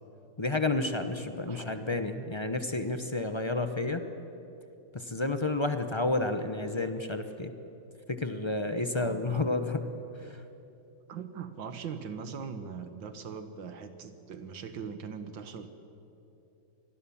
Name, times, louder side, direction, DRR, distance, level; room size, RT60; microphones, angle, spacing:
voice 1, 0.4-4.0 4.9-7.5 8.1-9.8 10.2-10.4, left 2 dB, 30° left, 8 dB, 0.5 m, -30 dB
voice 2, 1.5-1.9 9.0-9.5 11.1-15.7, right 6 dB, 75° right, 9 dB, 2.1 m, -41 dB
26.0 x 20.0 x 7.2 m, 2.9 s
omnidirectional pair, 2.1 m